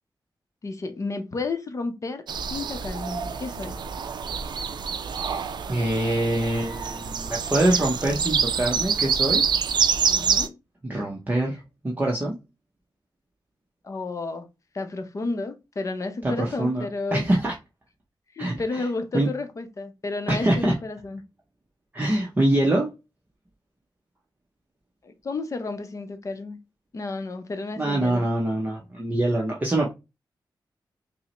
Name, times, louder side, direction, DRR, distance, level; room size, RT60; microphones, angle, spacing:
voice 1, 0.6-2.2 2.5-3.8 10.1-10.6 13.8-14.5 14.7-17.3 18.3-21.2 25.0-26.6 26.9-28.2, left 3 dB, 40° left, 0.6 m, -32 dB
sound 1, 2.3-10.5, right 6 dB, 65° right, 0.4 m, -26 dB
voice 2, 5.7-9.4 10.8-12.4 16.2-17.5 18.4-18.9 19.1-19.3 20.3-20.7 21.9-22.9 27.8-29.9, right 1 dB, 20° right, 0.7 m, -24 dB
5.4 x 2.1 x 2.9 m
wide cardioid pair, 135°, 8 cm